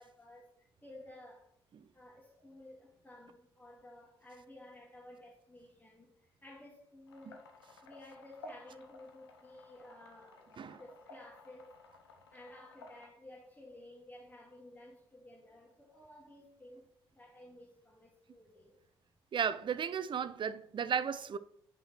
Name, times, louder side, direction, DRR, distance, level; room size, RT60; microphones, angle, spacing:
voice 1, 0.0-1.5 1.9-11.7 12.3-16.9 17.1-18.8, left 1 dB, 15° left, 1.7 m, -54 dB
sound 1, 7.1-13.1, left 2 dB, 85° left, 0.6 m, -55 dB
voice 2, 19.3-21.4, right 7 dB, 40° right, 0.5 m, -34 dB
7.6 x 5.6 x 2.9 m
figure-of-eight pair, 45°, 13 cm